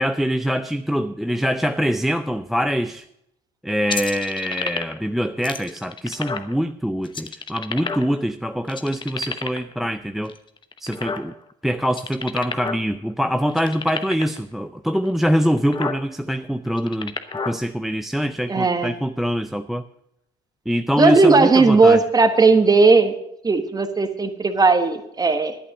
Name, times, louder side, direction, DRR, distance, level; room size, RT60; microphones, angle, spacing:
voice 1, 0.0-3.0 3.6-10.3 10.8-11.3 11.6-17.1 17.5-19.8 20.7-22.0, equal, ahead, 11 dB, 0.4 m, -24 dB
sound 1, 3.9-5.1 5.4-6.5 7.1-8.3 8.7-9.7 10.3-11.5 11.9-12.9 13.1-13.2 13.5-14.4 15.1-15.2 15.5-16.0 16.7-17.6, left 5 dB, 30° left, 1.0 m, -30 dB
voice 2, 18.5-18.9 21.0-23.1 23.4-25.6, right 4 dB, 20° right, 8 dB, 1.4 m, -16 dB
11.5 x 8.8 x 6.5 m, 0.78 s
cardioid pair, 110°, 17 cm